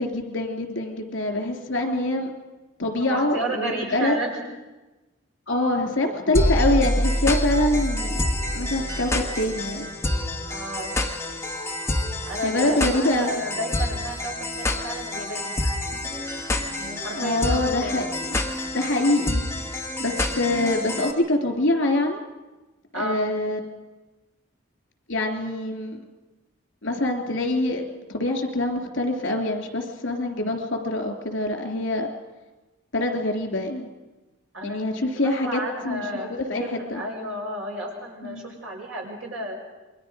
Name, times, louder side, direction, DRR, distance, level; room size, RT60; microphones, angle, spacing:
voice 1, 0.0-2.3 2.8-4.2 5.5-9.9 12.4-13.4 17.1-18.1 18.7-19.4 19.7-22.2 22.9-23.6 25.1-26.0 26.8-27.9 28.1-32.1 32.9-33.9 34.6-37.0 38.2-38.6, left 1 dB, 65° left, 4 dB, 3.3 m, -25 dB
voice 2, 3.0-4.4 10.5-10.9 12.3-15.7 16.2-18.0 22.9-23.3 34.5-39.6, right 1 dB, 85° right, -1 dB, 6.2 m, -33 dB
sound 1, 6.3-21.1, left 1 dB, 15° left, 1.4 m, -27 dB
28.0 x 22.5 x 5.2 m, 1.1 s
head